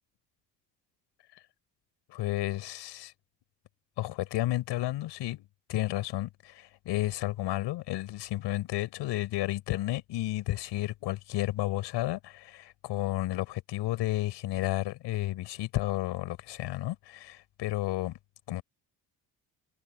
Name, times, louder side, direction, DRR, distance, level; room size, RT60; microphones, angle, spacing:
voice 1, 2.1-3.1 4.0-18.1 18.5-18.6, left 15 dB, 90° left, 5.8 m, -32 dB
open air
cardioid pair, 95°, 41 cm